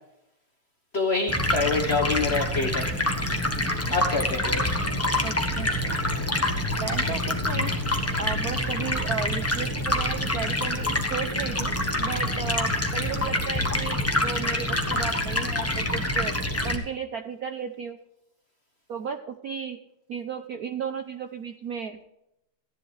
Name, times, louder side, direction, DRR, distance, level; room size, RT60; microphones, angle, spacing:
voice 1, 0.9-2.9 3.9-4.7, left 3 dB, 40° left, 4 dB, 1.0 m, -26 dB
Stream, 1.3-16.8, left 1 dB, 10° left, 0.8 m, -26 dB
voice 2, 5.2-5.9 6.8-7.7 8.2-16.3 16.6-18.0 18.9-19.8 20.1-22.0, right 6 dB, 65° right, 6 dB, 0.9 m, -34 dB
15.0 x 10.5 x 3.3 m, 0.83 s
omnidirectional pair, 2.4 m